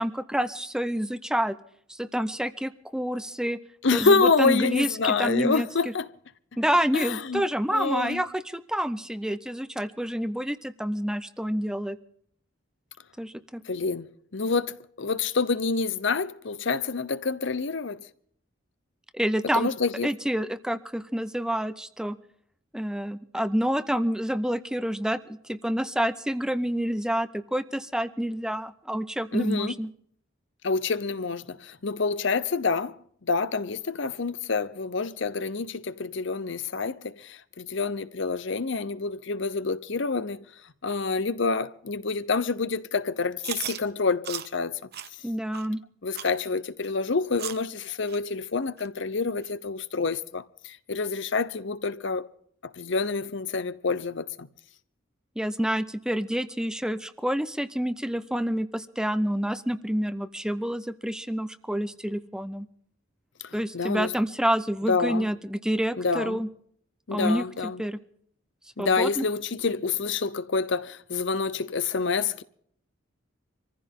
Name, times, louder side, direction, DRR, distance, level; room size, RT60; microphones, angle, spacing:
voice 1, 0.0-1.6 1.9-3.6 3.9-5.7 6.6-12.0 13.2-13.6 19.1-19.7 20.0-22.2 22.7-25.2 25.5-29.9 45.2-45.8 55.4-62.7 63.5-66.5 67.1-67.5 67.8-68.0 68.8-69.2, equal, 5° right, 0.6 m, -28 dB
voice 2, 3.8-6.1 6.9-7.4 7.7-8.2 13.7-18.1 19.5-20.1 29.3-29.8 30.6-40.4 40.8-44.8 46.0-52.3 52.6-54.5 63.4-64.1 64.9-65.3 66.0-66.4 67.1-67.8 68.8-72.4, left 4 dB, 65° left, 0.8 m, -27 dB
Chewing mastication, 43.4-43.8 44.2-44.5 44.9-45.1 45.5-45.7 46.1-46.3 46.8-46.9 47.4-47.6 48.1-48.2 48.8-48.9 49.4-49.5 50.1-50.2, right 11 dB, 55° right, 0.9 m, -35 dB
25.0 x 15.0 x 3.7 m
head